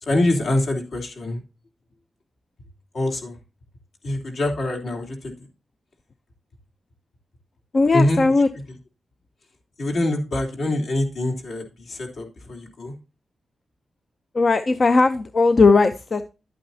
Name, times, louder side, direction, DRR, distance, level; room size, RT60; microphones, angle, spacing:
voice 1, 0.0-1.4 2.9-3.4 4.0-5.4 7.9-8.3 9.8-12.9, left 1 dB, 65° left, 2 dB, 3.4 m, -24 dB
voice 2, 7.7-8.5 14.3-16.3, left 3 dB, 35° left, 9 dB, 0.6 m, -17 dB
11.5 x 8.8 x 2.7 m, 0.32 s
wide cardioid pair, 155°, 0 cm